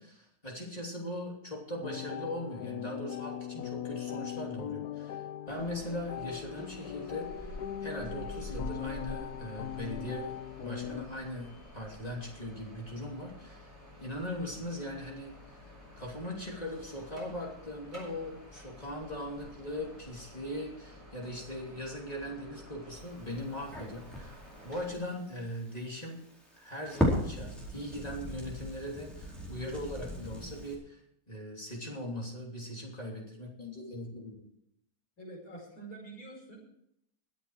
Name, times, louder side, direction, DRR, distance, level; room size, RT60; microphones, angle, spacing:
voice 1, 0.0-24.4 24.6-26.2 26.5-31.0 31.3-34.5, left 1 dB, 25° left, -1 dB, 3.2 m, -40 dB
sound 1, 1.8-11.0, left 11 dB, 80° left, 1.3 m, -40 dB
sound 2, 5.5-24.9, left 1 dB, 20° right, 6.6 m, -49 dB
Crackle, 23.0-30.7, equal, ahead, 4.3 m, -37 dB
voice 2, 35.2-36.6, right 2 dB, 65° left, -1 dB, 5.8 m, -46 dB
22.5 x 8.1 x 4.8 m, 0.74 s
omnidirectional pair, 1.7 m